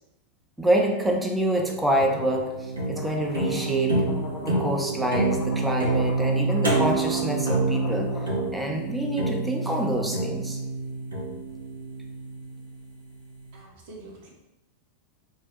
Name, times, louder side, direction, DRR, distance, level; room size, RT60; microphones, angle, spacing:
voice 1, 0.6-4.0 4.4-10.6, right 1 dB, 5° right, 1 dB, 0.5 m, -27 dB
sound 1, 1.5-12.7, right 2 dB, 80° right, 0.8 m, -27 dB
sound 2, 2.9-8.4, left 2 dB, 35° left, 0.8 m, -40 dB
voice 2, 13.5-14.3, right 2 dB, 50° right, -2 dB, 0.8 m, -45 dB
2.8 x 2.0 x 3.8 m, 1.0 s
figure-of-eight pair, 90°, 0 cm